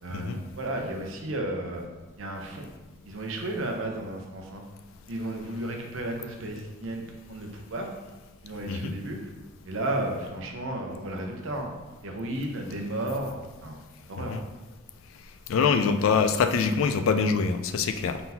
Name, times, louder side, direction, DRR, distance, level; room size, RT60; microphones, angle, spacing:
voice 1, 0.0-1.8 2.2-2.7 3.0-4.6 5.1-7.9 8.4-9.2 9.6-13.8 14.1-14.4, right 1 dB, 70° right, 2 dB, 0.7 m, -33 dB
voice 2, 15.5-18.2, left 5 dB, 75° left, 9 dB, 0.3 m, -24 dB
3.9 x 3.9 x 2.8 m, 1.2 s
head